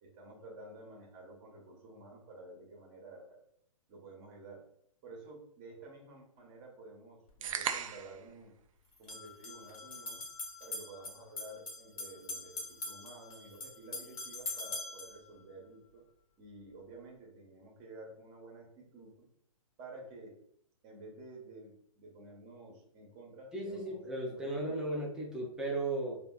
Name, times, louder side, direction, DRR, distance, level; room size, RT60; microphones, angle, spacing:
voice 1, 0.0-3.4 3.9-4.6 5.0-8.5 9.0-10.2 10.6-16.1 16.4-19.3 19.8-20.4 20.8-24.8, right 2 dB, 30° right, -1 dB, 0.9 m, -51 dB
sound 1, 7.3-7.4 8.9-15.2, left 2 dB, 75° left, 1.1 m, -43 dB
sound 2, 7.4-8.2, right 7 dB, 65° right, 0.4 m, -36 dB
voice 2, 23.5-26.2, right 2 dB, 5° right, -4 dB, 0.7 m, -36 dB
3.3 x 2.4 x 2.3 m, 0.71 s
hypercardioid pair, 135°, 18 cm